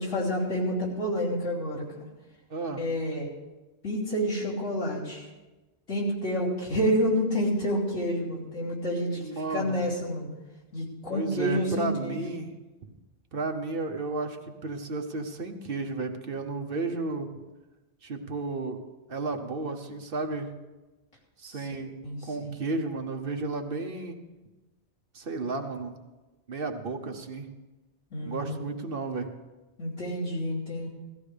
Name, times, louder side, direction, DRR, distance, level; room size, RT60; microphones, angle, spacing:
voice 1, 0.0-2.1 2.8-3.3 3.8-5.3 5.9-9.2 9.5-10.3 10.7-12.3 21.5-22.5 28.1-28.5 29.8-30.9, equal, 90° left, -6 dB, 3.5 m, -29 dB
voice 2, 2.5-2.9 9.2-9.9 11.1-12.6 13.3-17.3 18.0-18.8 19.1-20.5 21.4-21.9 22.2-24.2 25.1-26.0 26.5-27.5 28.2-29.3, right 3 dB, 55° right, 5 dB, 1.1 m, -33 dB
17.0 x 14.5 x 3.3 m, 1.1 s
omnidirectional pair, 1.2 m